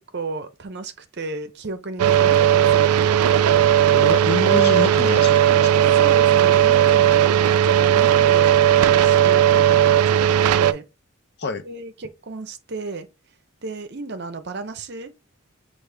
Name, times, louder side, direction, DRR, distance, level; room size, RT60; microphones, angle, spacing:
voice 1, 0.0-3.1 5.5-5.6 5.9-10.8 11.6-13.1 13.6-15.1, right 3 dB, 50° right, 0.6 m, -34 dB
sound 1, 2.0-10.7, right 10 dB, 85° right, 0.3 m, -16 dB
voice 2, 3.9-5.9 11.4-11.6, left 4 dB, 50° left, 0.6 m, -27 dB
6.4 x 2.5 x 3.3 m
head